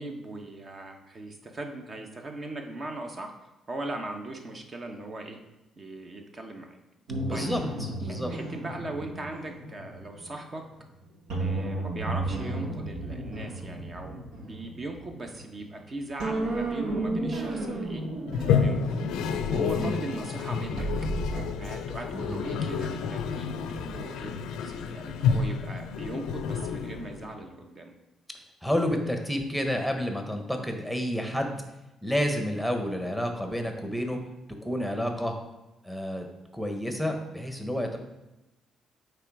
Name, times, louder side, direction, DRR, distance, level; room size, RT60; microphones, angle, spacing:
voice 1, 0.0-3.3 3.7-5.4 5.8-6.8 7.3-7.5 8.0-10.7 11.4-18.0 18.4-19.1 19.5-20.9 21.6-27.9, right 2 dB, 40° right, 3 dB, 1.0 m, -39 dB
Weird Delay Droid, 7.1-10.8 11.3-15.8 16.2-21.4, right 2 dB, 85° right, 1.3 m, -34 dB
voice 2, 7.3-7.6 8.0-8.3 19.6-19.9 22.1-22.4 28.6-31.6 32.0-34.2 34.6-35.3 35.8-36.3 36.5-38.0, equal, 5° right, 4 dB, 1.1 m, -30 dB
Toilet flush, 18.3-27.4, left 6 dB, 90° left, 0.4 m, -29 dB
8.0 x 3.4 x 4.8 m, 0.98 s
cardioid pair, 90°, 0 cm